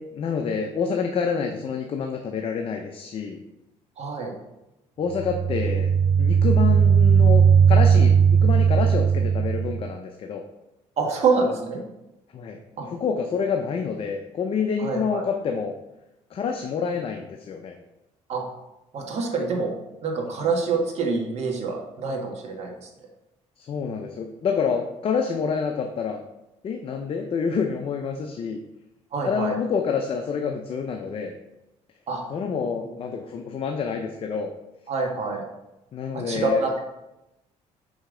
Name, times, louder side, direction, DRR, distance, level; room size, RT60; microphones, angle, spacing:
voice 1, 0.0-3.4 5.0-5.9 6.2-10.4 12.3-12.6 12.9-15.7 16.3-17.7 23.6-26.2 26.6-28.6 29.2-31.4 32.3-34.5 35.9-36.6, left 6 dB, 45° left, 4 dB, 0.6 m, -27 dB
voice 2, 4.0-4.3 11.0-11.8 12.8-12.9 14.8-15.2 18.3-18.4 18.9-19.7 20.0-22.9 29.1-29.5 32.1-32.2 34.9-35.4 36.1-36.9, right 4 dB, 55° right, 1 dB, 1.5 m, -26 dB
sound 1, 5.1-9.8, right 7 dB, 5° right, 1.3 m, -18 dB
5.7 x 5.1 x 3.8 m, 0.95 s
cardioid pair, 100°, 13 cm